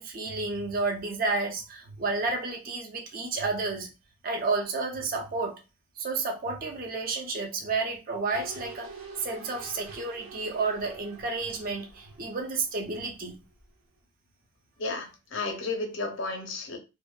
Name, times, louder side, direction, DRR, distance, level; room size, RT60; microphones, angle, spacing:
voice 1, 0.0-3.9 4.2-5.6 6.0-8.9 9.2-13.4, right 3 dB, 40° right, 0.5 m, -31 dB
sound 1, 8.3-13.3 13.6-13.7, right 4 dB, 90° right, 0.7 m, -47 dB
voice 2, 14.8-16.8, left 3 dB, 60° left, 0.6 m, -33 dB
2.5 x 2.2 x 2.2 m
head